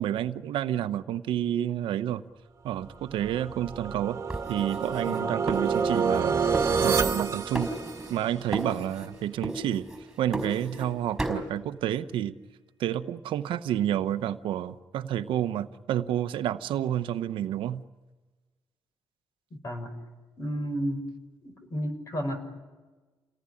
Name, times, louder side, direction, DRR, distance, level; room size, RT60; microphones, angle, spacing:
voice 1, 0.0-2.2 2.6-4.2 4.5-6.4 6.8-7.7 8.1-9.9 10.2-12.3 12.8-17.8, right 11 dB, 85° right, 11 dB, 1.0 m, -29 dB
sound 1, 3.2-8.4, right 5 dB, 35° right, 1.8 m, -28 dB
sound 2, 4.3-6.2 6.5-7.3 7.5-8.2 8.5-9.1 9.4-10.9 11.2-11.5, right 1 dB, 5° right, 5.0 m, -35 dB
voice 2, 19.5-20.0 20.4-21.1 21.4-22.4, equal, 40° left, 7 dB, 5.7 m, -32 dB
28.5 x 18.5 x 10.0 m, 1.3 s
cardioid pair, 120°, 8 cm